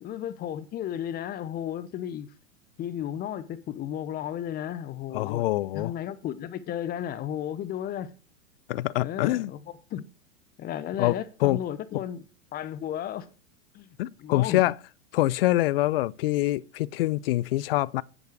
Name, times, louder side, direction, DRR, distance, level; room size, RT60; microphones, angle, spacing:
voice 1, 0.0-2.3 2.8-5.4 5.7-8.1 9.0-10.0 10.6-12.2 12.5-13.3 13.7-14.6, left 10 dB, 25° left, 0.8 m, -34 dB
voice 2, 5.1-5.9 8.7-9.5 11.0-11.6 14.0-14.7 15.1-18.0, left 16 dB, 45° left, 0.4 m, -25 dB
9.8 x 8.2 x 4.6 m
hypercardioid pair, 110°, 40 cm